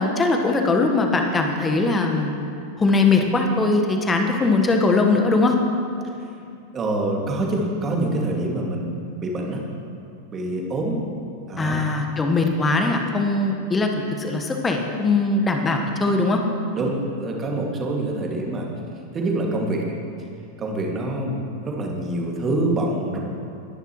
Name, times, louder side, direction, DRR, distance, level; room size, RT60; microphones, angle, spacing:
voice 1, 0.0-2.5 2.8-5.6 11.6-13.9 14.2-16.4, left 3 dB, 15° left, 3 dB, 1.3 m, -20 dB
voice 2, 6.7-9.6 10.3-11.0 11.5-11.8 16.8-18.7 19.1-19.9 20.6-23.2, right 2 dB, 25° right, -1 dB, 2.2 m, -26 dB
20.5 x 10.5 x 3.1 m, 2.5 s
figure-of-eight pair, 90°, 0 cm